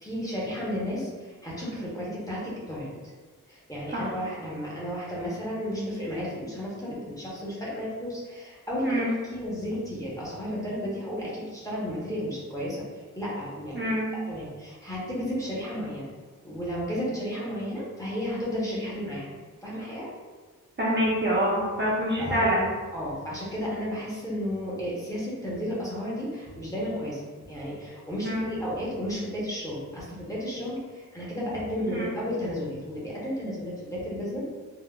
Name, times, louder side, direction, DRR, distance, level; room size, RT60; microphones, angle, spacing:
voice 1, 0.0-2.9 3.5-16.1 16.4-19.3 19.6-20.1 22.2-22.5 22.9-27.2 27.5-34.4, equal, 10° left, -7 dB, 0.7 m, -33 dB
voice 2, 8.8-9.1 13.7-14.1 20.8-22.6 28.2-28.5 31.9-32.1, equal, 35° right, -6 dB, 0.6 m, -26 dB
3.5 x 2.2 x 2.2 m, 1.4 s
wide cardioid pair, 140°, 33 cm